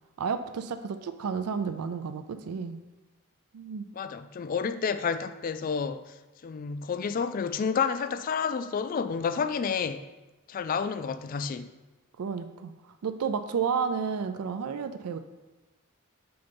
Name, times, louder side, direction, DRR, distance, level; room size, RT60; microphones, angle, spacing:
voice 1, 0.2-2.8 3.5-3.9 12.2-12.7 13.0-15.2, right 6 dB, 85° right, 10 dB, 0.4 m, -31 dB
voice 2, 3.9-6.1 6.4-10.0 10.5-11.7, left 6 dB, 40° left, 11 dB, 0.3 m, -30 dB
6.8 x 3.9 x 5.2 m, 1.1 s
head